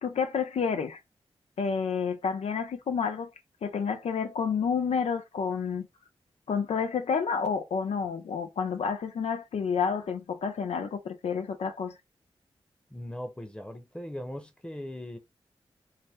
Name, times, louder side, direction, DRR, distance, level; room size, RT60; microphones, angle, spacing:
voice 1, 0.0-1.0 1.6-3.3 3.6-5.9 6.5-11.9, left 6 dB, 75° left, 0.5 m, -29 dB
voice 2, 12.9-15.2, left 1 dB, 10° left, 0.9 m, -39 dB
2.7 x 2.1 x 3.5 m
cardioid pair, 40°, 11 cm